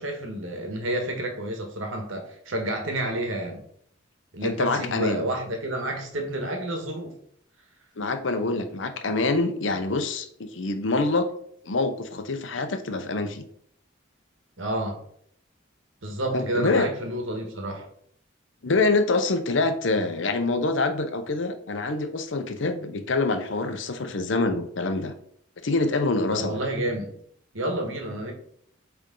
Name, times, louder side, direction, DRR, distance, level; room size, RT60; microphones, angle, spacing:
voice 1, 0.0-3.6 4.3-7.1 14.6-15.0 16.0-17.9 26.3-27.1 27.5-28.3, right 1 dB, 90° right, 3 dB, 1.5 m, -30 dB
voice 2, 4.4-5.2 8.0-11.3 11.6-13.4 16.3-16.9 18.6-25.1 25.6-26.6, left 3 dB, 75° left, 8 dB, 0.8 m, -25 dB
8.3 x 3.5 x 3.9 m, 0.65 s
head